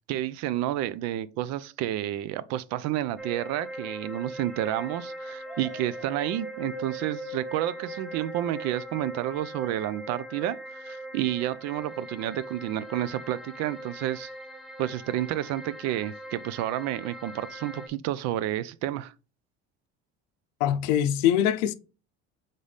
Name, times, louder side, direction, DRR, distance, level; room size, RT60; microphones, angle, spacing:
voice 1, 0.1-14.3 14.8-19.1, right 13 dB, 65° right, 0.5 m, -30 dB
sound 1, 3.2-17.9, equal, ahead, 0.4 m, -41 dB
sound 2, 5.5-9.7, equal, 25° right, 0.9 m, -44 dB
voice 2, 20.6-21.7, left 10 dB, 80° left, 0.5 m, -23 dB
4.0 x 3.7 x 3.3 m
supercardioid pair, 115°, 29 cm